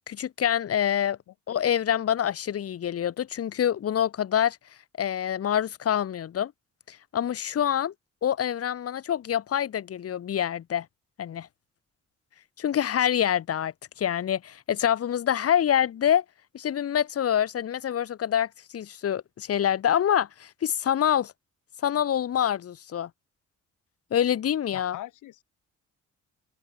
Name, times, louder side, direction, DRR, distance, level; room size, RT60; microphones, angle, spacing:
voice 1, 0.0-1.2 1.5-4.6 5.0-6.5 6.9-7.9 8.2-10.9 11.2-11.5 12.6-16.2 16.5-21.3 21.8-23.1 24.1-25.0, left 9 dB, 50° left, 1.2 m, -26 dB
voice 2, 24.7-25.4, left 14 dB, 85° left, 2.8 m, -41 dB
open air
cardioid pair, 90°, 30 cm